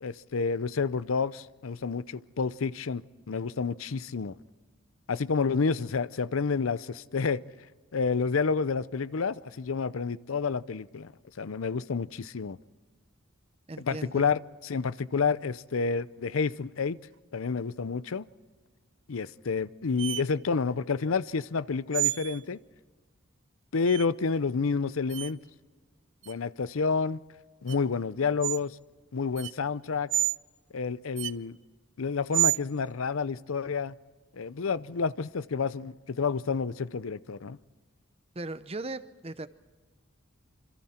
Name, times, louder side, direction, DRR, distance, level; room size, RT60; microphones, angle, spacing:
voice 1, 0.0-3.0 3.3-4.4 5.1-7.4 7.9-11.1 11.4-12.6 13.8-17.0 17.3-18.3 19.1-22.6 23.7-25.4 26.3-27.2 27.6-28.8 29.1-30.1 30.7-31.6 32.0-33.9 34.3-37.6, left 5 dB, 85° left, 0.6 m, -29 dB
voice 2, 13.7-14.3 38.3-39.5, right 2 dB, 30° right, 0.7 m, -38 dB
sound 1, 20.0-20.2 21.9-22.4 23.8-24.1 25.1-25.3 26.2-26.3 27.7-27.8 28.4-28.6 29.4-29.5 30.1-30.4 31.2-31.4 32.3-32.6, right 14 dB, 65° right, 0.5 m, -28 dB
26.5 x 26.5 x 4.4 m
head